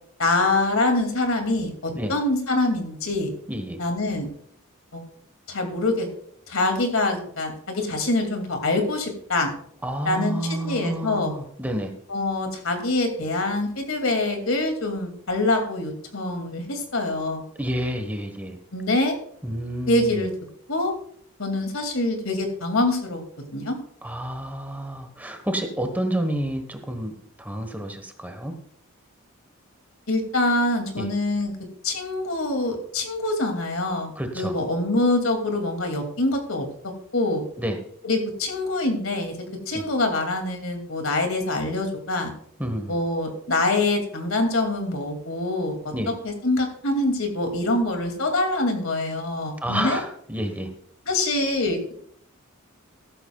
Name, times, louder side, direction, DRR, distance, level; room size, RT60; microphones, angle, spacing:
voice 1, 0.2-3.3 3.8-4.3 4.9-5.0 5.5-6.1 6.5-9.5 10.0-11.3 12.1-17.4 18.7-19.1 19.9-20.3 20.7-20.9 21.4-23.2 23.5-23.8 30.1-31.5 31.8-36.7 37.1-37.4 38.0-39.4 39.7-42.3 42.9-45.9 46.2-50.0 51.1-51.9, left 2 dB, 75° left, 5 dB, 2.6 m, -25 dB
voice 2, 3.5-3.8 9.8-11.9 17.6-18.6 19.4-20.2 24.0-27.1 27.4-28.5 30.9-31.1 34.2-34.6 37.6-37.8 39.7-39.8 42.6-42.9 45.9-46.1 49.6-50.7, right 1 dB, 10° right, 5 dB, 1.3 m, -29 dB
14.0 x 13.0 x 2.4 m, 0.64 s
head